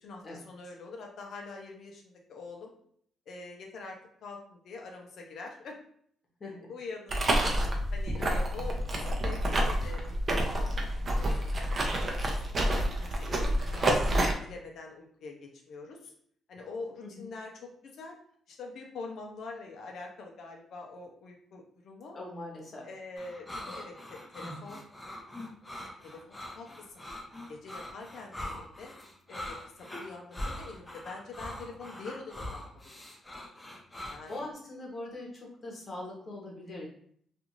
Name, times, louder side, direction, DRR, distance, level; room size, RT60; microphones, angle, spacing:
voice 1, 0.0-2.7 3.3-5.8 6.4-7.6 7.9-10.7 11.2-11.6 12.3-14.0 14.4-16.1 16.5-18.2 18.5-22.2 22.8-24.8 26.0-27.0 27.5-28.9 29.3-33.0 34.1-34.4, left 3 dB, 70° left, 1 dB, 0.5 m, -45 dB
sound 1, 7.1-14.3, right 1 dB, 35° right, 0.6 m, -28 dB
voice 2, 22.1-22.9 33.9-36.9, left 2 dB, 40° left, -1 dB, 1.0 m, -42 dB
sound 2, 23.2-34.4, left 1 dB, 15° left, 0.6 m, -42 dB
2.5 x 2.4 x 2.9 m, 0.63 s
cardioid pair, 90°, 0 cm